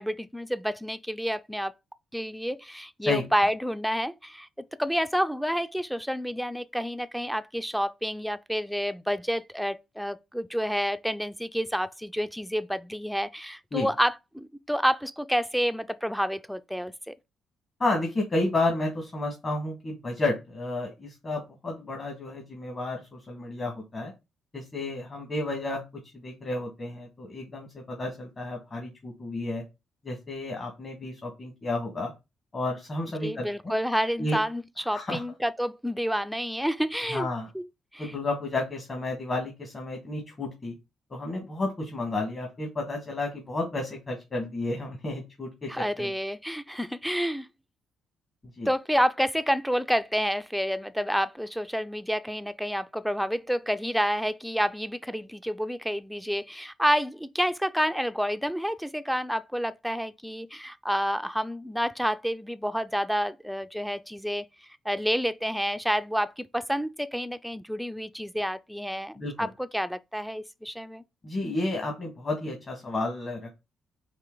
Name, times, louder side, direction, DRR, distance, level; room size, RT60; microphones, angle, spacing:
voice 1, 0.0-1.7 2.1-4.5 4.8-17.1 33.2-37.3 37.5-37.7 37.9-38.1 45.7-47.5 48.7-64.5 64.9-71.0, equal, ahead, 0.4 m, -29 dB
voice 2, 17.8-24.1 24.5-25.8 26.2-29.6 30.0-32.1 32.5-33.7 34.2-34.4 34.9-35.2 37.1-37.5 38.0-40.7 41.1-45.7 46.0-46.1 48.6-48.7 69.1-69.5 71.2-73.5, left 2 dB, 40° left, 1.6 m, -31 dB
4.3 x 2.9 x 3.8 m
supercardioid pair, 60°, 0 cm